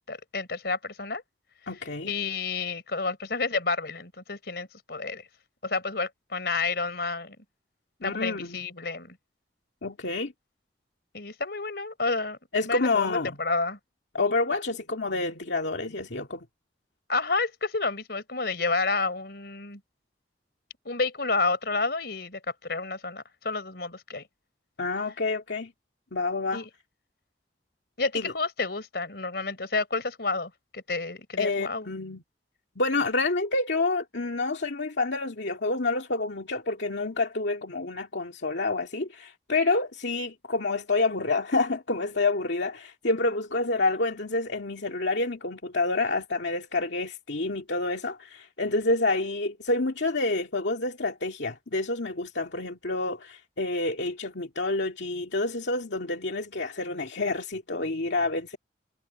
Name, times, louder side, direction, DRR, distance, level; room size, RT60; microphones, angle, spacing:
voice 1, 0.1-1.2 2.0-5.2 5.6-7.4 8.0-9.2 11.1-12.4 12.6-13.8 17.1-19.8 20.8-24.2 26.5-26.7 28.0-31.9, left 3 dB, 60° left, 4.0 m, -30 dB
voice 2, 1.7-2.1 8.0-8.6 9.8-10.3 12.5-13.4 14.1-16.5 24.8-25.7 26.1-26.7 28.1-28.3 31.4-32.2 32.8-58.6, left 3 dB, 80° left, 2.2 m, -28 dB
head